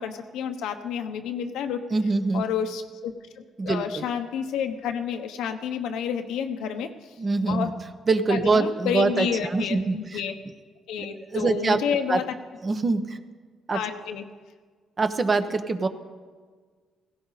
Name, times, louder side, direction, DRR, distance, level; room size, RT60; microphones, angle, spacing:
voice 1, 0.0-1.8 2.3-7.1 7.4-7.7 8.3-10.4 10.9-12.2 13.7-14.2, left 8 dB, 90° left, 6 dB, 1.2 m, -30 dB
voice 2, 1.9-2.4 3.6-4.0 7.2-7.7 8.1-10.2 11.0-11.1 11.3-11.8 12.1-12.2 12.6-13.2 13.7-13.8 15.0-15.9, right 3 dB, 35° right, 9 dB, 1.1 m, -24 dB
16.5 x 16.5 x 4.2 m, 1.5 s
cardioid pair, 90°, 0 cm